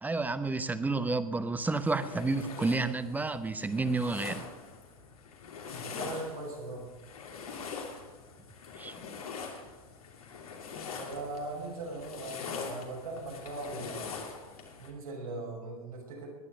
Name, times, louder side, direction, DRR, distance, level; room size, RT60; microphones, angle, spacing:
voice 1, 0.0-4.5 8.8-8.9, right 3 dB, 10° right, 11 dB, 1.0 m, -30 dB
sound 1, 1.6-14.9, left 5 dB, 80° left, 2.8 m, -43 dB
voice 2, 5.8-6.9 10.9-14.2 14.8-16.3, right 2 dB, 85° right, -3 dB, 6.0 m, -40 dB
20.5 x 9.8 x 5.2 m, 1.2 s
hypercardioid pair, 95°, 18 cm